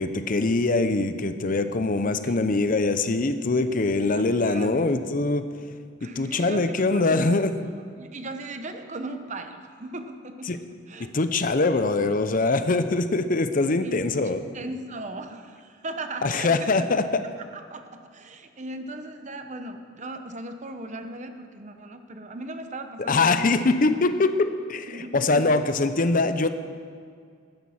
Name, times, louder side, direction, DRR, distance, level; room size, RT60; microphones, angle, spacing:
voice 1, 0.0-5.4 6.0-7.5 10.5-10.6 11.1-14.4 16.2-17.1 23.1-26.5, left 3 dB, 45° left, 10 dB, 0.7 m, -23 dB
voice 2, 4.1-5.0 6.0-7.3 8.0-11.1 13.6-16.9 17.5-23.7 24.9-25.5, right 2 dB, 40° right, 7 dB, 0.9 m, -38 dB
12.0 x 10.5 x 7.2 m, 2.2 s
head